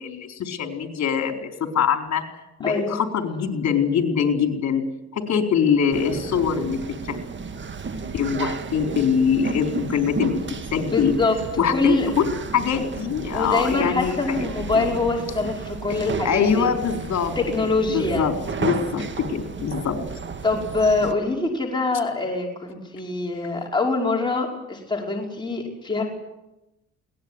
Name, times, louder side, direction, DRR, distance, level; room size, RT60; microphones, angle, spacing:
voice 1, 0.0-2.2 2.6-4.8 5.1-7.2 8.1-10.4 10.7-11.1 11.6-12.2 12.5-14.4 14.7-14.9 16.2-17.4 17.9-18.3 18.6-20.0, left 7 dB, 65° left, 5 dB, 4.2 m, -23 dB
voice 2, 2.6-3.0 10.9-11.4 11.7-12.1 13.3-16.7 17.4-18.3 20.4-26.1, left 3 dB, 15° left, -1 dB, 5.4 m, -24 dB
sound 1, 5.9-21.1, right 5 dB, 40° right, 1.9 m, -33 dB
21.5 x 19.0 x 9.8 m, 0.96 s
cardioid pair, 90°, 30 cm